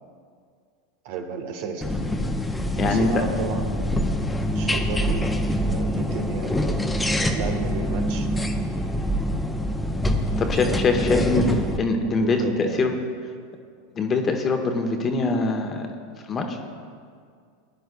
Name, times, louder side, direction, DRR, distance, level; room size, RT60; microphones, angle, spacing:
voice 1, 1.0-2.0 2.7-4.0 4.5-5.3 5.6-6.7 7.3-8.3 10.9-11.6 12.0-12.9, right 4 dB, 55° right, 4 dB, 1.3 m, -33 dB
sound 1, 1.8-11.8, equal, 10° left, 0.8 m, -25 dB
voice 2, 2.8-3.2 10.4-11.4 11.8-12.9 13.9-15.9 16.3-16.6, left 3 dB, 30° left, 4 dB, 1.2 m, -23 dB
20.5 x 10.5 x 2.3 m, 2.1 s
figure-of-eight pair, 85°, 0 cm